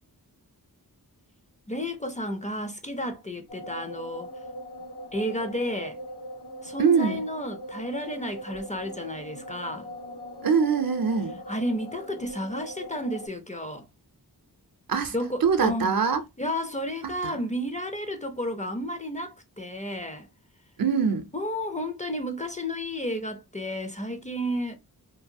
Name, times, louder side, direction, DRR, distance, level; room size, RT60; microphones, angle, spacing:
voice 1, 1.7-4.3 5.1-6.0 6.6-9.9 11.5-13.9 15.1-15.9 16.4-20.3 21.3-24.8, equal, 20° left, 0.4 m, -32 dB
sound 1, 3.5-13.3, equal, 85° left, 1.1 m, -41 dB
voice 2, 6.8-7.2 10.4-11.4 14.9-15.1 15.4-16.2 17.2-17.4 20.8-21.3, right 6 dB, 65° right, 0.6 m, -23 dB
2.7 x 2.3 x 2.6 m
wide cardioid pair, 70°, 38 cm